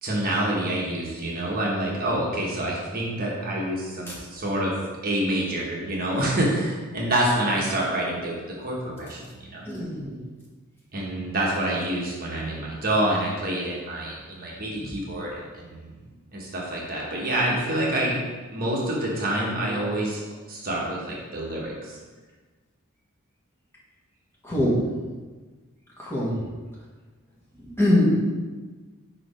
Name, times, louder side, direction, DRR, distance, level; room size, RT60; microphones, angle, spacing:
voice 1, 0.0-4.7 5.0-9.7 10.9-15.9 16.3-18.2 18.5-20.2 20.5-22.0, right 1 dB, 40° right, -3 dB, 1.2 m, -27 dB
voice 2, 9.7-10.2 24.4-24.8 26.0-26.4 27.6-28.1, left 1 dB, 10° left, -7 dB, 1.6 m, -22 dB
4.9 x 4.8 x 5.0 m, 1.3 s
head